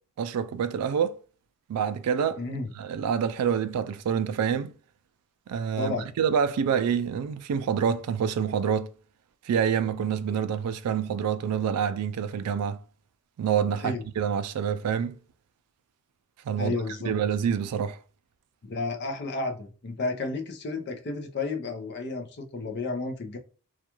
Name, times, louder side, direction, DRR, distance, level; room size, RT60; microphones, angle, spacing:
voice 1, 0.2-1.2 1.7-2.4 2.8-4.7 5.5-8.9 9.5-12.8 13.4-15.2 16.5-16.8 17.0-18.0, right 7 dB, 90° right, 0.3 m, -27 dB
voice 2, 2.4-2.7 5.8-6.1 13.8-14.0 16.6-17.2 18.7-23.4, left 3 dB, 50° left, 0.5 m, -32 dB
2.4 x 2.2 x 2.9 m
head